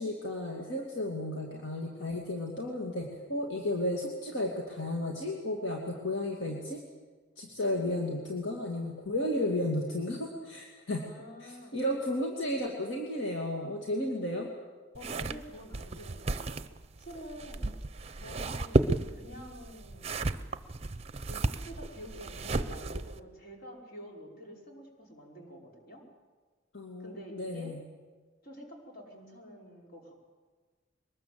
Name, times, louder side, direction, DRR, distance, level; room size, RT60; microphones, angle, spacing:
voice 1, 0.0-6.8 7.4-11.0 11.4-14.5 26.7-27.8, left 1 dB, 70° left, 0 dB, 2.5 m, -33 dB
voice 2, 11.0-11.7 14.9-16.7 17.0-17.7 18.1-20.3 21.3-26.0 27.0-27.7 28.4-30.3, equal, 50° left, -1 dB, 5.2 m, -48 dB
sound 1, 14.9-23.2, right 2 dB, 35° right, 0.7 m, -33 dB
23.0 x 20.0 x 7.8 m, 1.4 s
head